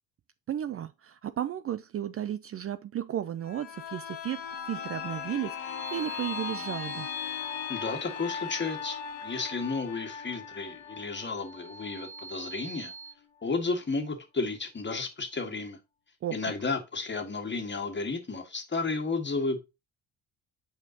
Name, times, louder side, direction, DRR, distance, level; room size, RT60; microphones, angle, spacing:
voice 1, 0.5-4.4 4.7-7.1 16.2-16.4, right 11 dB, 40° right, 0.4 m, -34 dB
sound 1, 3.4-13.0 13.4-13.5, left 7 dB, 80° left, 1.1 m, -38 dB
sound 2, 5.5-8.1 11.0-13.1, right 4 dB, 5° right, 1.0 m, -45 dB
voice 2, 7.7-12.9 13.4-15.8 16.3-19.6, left 3 dB, 30° left, 1.7 m, -32 dB
7.9 x 4.3 x 2.8 m
hypercardioid pair, 50°, 38 cm